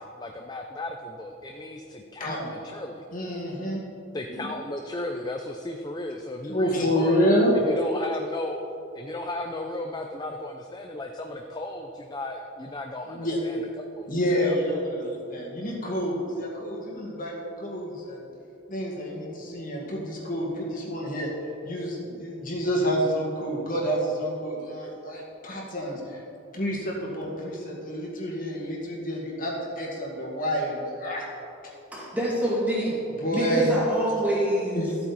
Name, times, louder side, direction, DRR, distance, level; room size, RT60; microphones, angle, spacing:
voice 1, 0.0-3.0 4.1-7.2 7.6-8.6 8.9-13.6 14.0-14.1 14.4-14.6, left 1 dB, 20° left, 3 dB, 0.4 m, -35 dB
voice 2, 3.1-3.8 4.3-4.5 6.5-7.5 13.1-13.4 14.1-18.3 18.7-21.3 21.6-26.2 26.5-31.2 33.2-33.8 34.7-35.0, equal, 40° left, -3 dB, 2.0 m, -28 dB
voice 3, 31.9-33.0 33.3-34.9, equal, 5° right, -7 dB, 2.4 m, -26 dB
13.5 x 8.4 x 4.2 m, 2.9 s
head